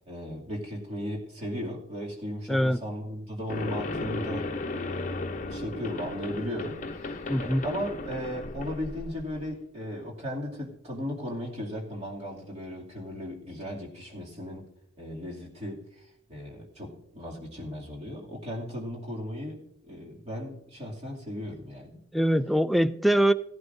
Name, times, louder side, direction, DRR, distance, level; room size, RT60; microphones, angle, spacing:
voice 1, 0.1-4.5 4.8-14.6 15.0-15.9 16.3-22.0, equal, 35° right, 2.5 m, -36 dB
sound 1, 3.5-9.5, left 2 dB, 45° left, 0.7 m, -35 dB
voice 2, 7.3-7.6 22.1-23.3, right 1 dB, ahead, 0.3 m, -23 dB
15.5 x 11.5 x 2.6 m
head